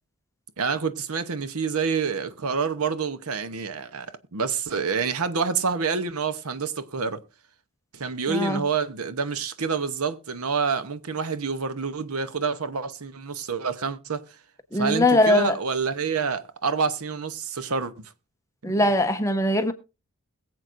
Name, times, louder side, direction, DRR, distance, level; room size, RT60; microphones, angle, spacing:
voice 1, 0.6-7.2 7.9-14.2 14.7-18.1 18.7-18.8, right 5 dB, 75° right, 0.9 m, -27 dB
voice 2, 8.3-8.6 14.7-15.6 18.6-19.7, left 1 dB, 15° left, 0.9 m, -21 dB
21.5 x 7.8 x 2.6 m
head